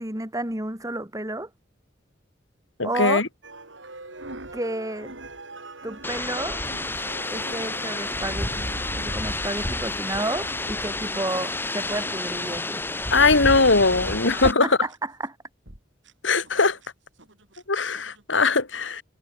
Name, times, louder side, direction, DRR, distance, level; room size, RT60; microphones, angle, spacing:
voice 1, 0.0-1.5 2.8-3.2 4.5-5.1 5.8-6.6 7.3-12.8 14.6-15.3, right 2 dB, 20° right, 3.0 m, -31 dB
voice 2, 2.8-3.3 13.1-14.8 16.2-16.8 17.7-19.0, left 3 dB, 75° left, 2.7 m, -20 dB
sound 1, 3.4-14.3 14.9-15.0 15.7-15.8 16.0-16.1 16.4-16.9 17.2-17.6 18.0-18.2, right 2 dB, 75° right, 6.6 m, -43 dB
sound 2, 6.0-14.5, left 2 dB, 10° left, 1.7 m, -30 dB
head